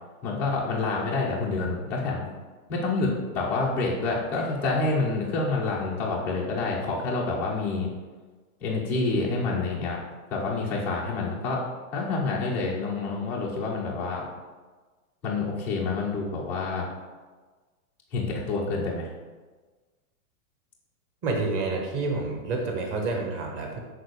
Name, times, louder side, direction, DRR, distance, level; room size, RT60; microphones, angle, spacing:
voice 1, 0.2-2.3 2.7-7.9 8.6-10.0 10.3-11.6 11.9-14.3 15.2-16.9 18.1-19.1, left 3 dB, 5° left, -6 dB, 0.4 m, -28 dB
voice 2, 21.2-23.8, right 3 dB, 30° right, 1 dB, 1.4 m, -28 dB
6.6 x 4.6 x 6.5 m, 1.3 s
supercardioid pair, 160°, 43 cm